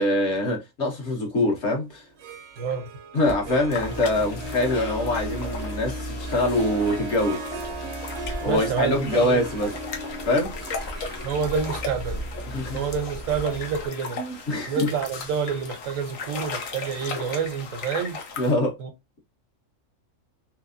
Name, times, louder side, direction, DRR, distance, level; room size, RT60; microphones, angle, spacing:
voice 1, 0.0-2.1 3.1-7.4 8.4-9.7 10.3-10.5 12.5-12.8 14.2-14.9 18.4-18.7, left 1 dB, 60° left, 1.4 m, -24 dB
Harp, 2.1-15.0, right 2 dB, 65° right, 0.7 m, -38 dB
voice 2, 2.6-2.9 8.4-9.4 11.2-12.3 12.7-14.2 14.7-18.2 18.8-18.9, right 6 dB, 85° right, 1.1 m, -28 dB
sound 1, 3.2-13.9, right 1 dB, 25° left, 0.5 m, -37 dB
sound 2, 3.7-18.5, left 4 dB, 90° left, 1.2 m, -37 dB
3.3 x 3.2 x 2.5 m
omnidirectional pair, 1.3 m